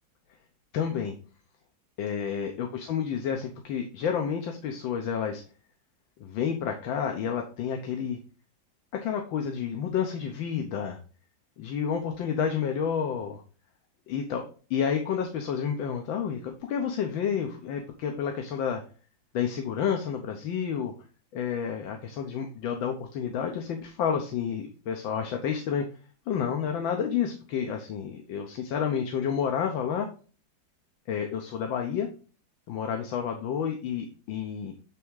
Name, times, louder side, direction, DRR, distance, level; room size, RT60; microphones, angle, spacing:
voice 1, 0.7-1.1 2.0-5.4 6.2-8.2 8.9-11.0 11.6-13.4 14.1-14.4 14.7-18.8 19.3-20.9 21.3-25.8 26.3-30.1 31.1-32.1 32.7-34.7, left 7 dB, 85° left, 4 dB, 1.7 m, -30 dB
9.0 x 3.5 x 4.7 m, 0.37 s
omnidirectional pair, 2.1 m